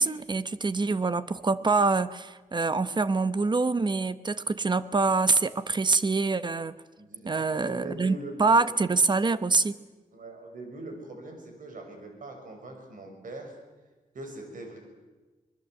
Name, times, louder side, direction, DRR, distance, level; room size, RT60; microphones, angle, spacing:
voice 1, 0.0-6.8 7.2-9.8, right 3 dB, 35° right, 14 dB, 1.0 m, -25 dB
voice 2, 7.0-8.4 10.1-13.5 14.1-14.8, right 2 dB, 75° right, 3 dB, 6.3 m, -42 dB
25.0 x 21.0 x 7.9 m, 1.2 s
wide cardioid pair, 105°, 14 cm